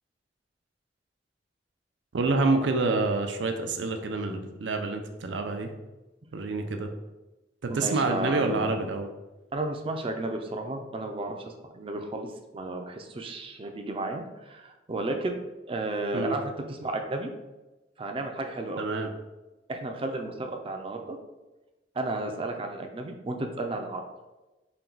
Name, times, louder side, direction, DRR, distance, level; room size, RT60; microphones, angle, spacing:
voice 1, 2.1-5.7 6.3-6.9 7.6-9.1 16.1-16.4 18.8-19.1, right 3 dB, 90° right, 5 dB, 0.5 m, -27 dB
voice 2, 7.7-8.8 9.5-11.4 11.7-15.4 15.7-17.3 18.0-18.8 19.7-21.2 22.0-24.1, right 2 dB, 30° right, 4 dB, 0.4 m, -33 dB
4.4 x 2.2 x 3.8 m, 1.1 s
head